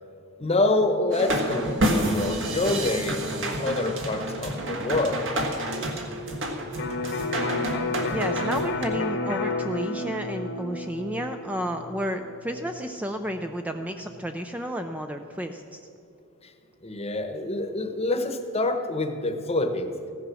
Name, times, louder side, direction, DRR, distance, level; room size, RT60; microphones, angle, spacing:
voice 1, 0.4-5.2 16.8-19.9, left 2 dB, 30° left, 7 dB, 1.0 m, -26 dB
sound 1, 1.1-8.8, right 1 dB, 60° right, 1.7 m, -29 dB
Electric guitar, 6.8-14.4, left 3 dB, 55° left, 1.0 m, -32 dB
voice 2, 8.1-15.8, equal, 5° right, 6 dB, 0.4 m, -31 dB
15.0 x 9.8 x 6.2 m, 2.6 s
head